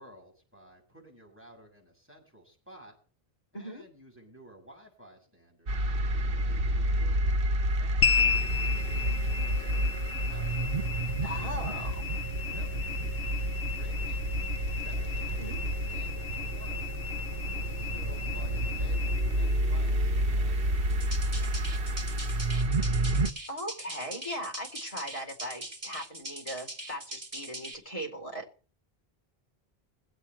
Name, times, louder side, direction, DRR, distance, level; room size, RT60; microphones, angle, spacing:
voice 1, 0.0-2.9 3.5-10.7 11.4-16.8 17.5-22.9, equal, 10° right, -1 dB, 7.2 m, -54 dB
sound 1, 5.7-23.3, right 1 dB, 65° right, 1.3 m, -29 dB
sound 2, 8.0-22.6, left 8 dB, 75° left, 1.1 m, -35 dB
voice 2, 11.2-12.0 15.4-15.6 23.5-28.5, equal, 35° left, 0 dB, 4.4 m, -38 dB
sound 3, 20.9-27.7, right 1 dB, 40° right, 3.2 m, -41 dB
21.5 x 8.4 x 4.7 m, 0.39 s
omnidirectional pair, 1.0 m